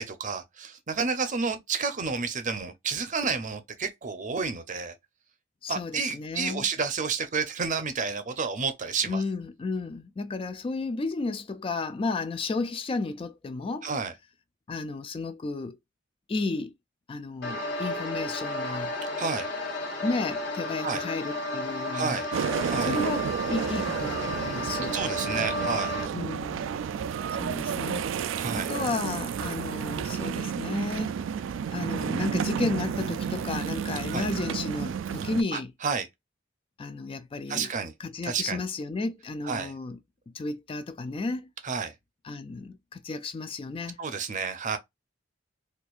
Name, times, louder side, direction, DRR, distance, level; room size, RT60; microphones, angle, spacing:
voice 1, 0.0-4.9 5.7-9.2 13.8-14.1 19.2-19.5 20.8-21.0 21.9-22.3 22.7-22.9 24.7-26.0 28.4-28.7 34.1-34.3 35.5-36.1 37.5-37.9 38.2-38.6 39.4-39.7 41.6-41.9 44.0-44.8, right 5 dB, 40° right, 0.7 m, -30 dB
voice 2, 5.6-6.7 9.0-13.9 14.7-15.8 16.3-16.7 17.1-18.9 20.0-22.2 22.8-25.0 26.1-26.7 27.4-31.1 31.7-35.7 36.8-37.7 38.0-40.0 40.3-41.5 42.2-44.0, left 3 dB, 30° left, 0.3 m, -33 dB
sound 1, 17.4-26.1, left 1 dB, 60° left, 1.2 m, -33 dB
sound 2, 22.3-35.4, right 7 dB, 75° right, 0.3 m, -31 dB
4.3 x 2.5 x 2.3 m
head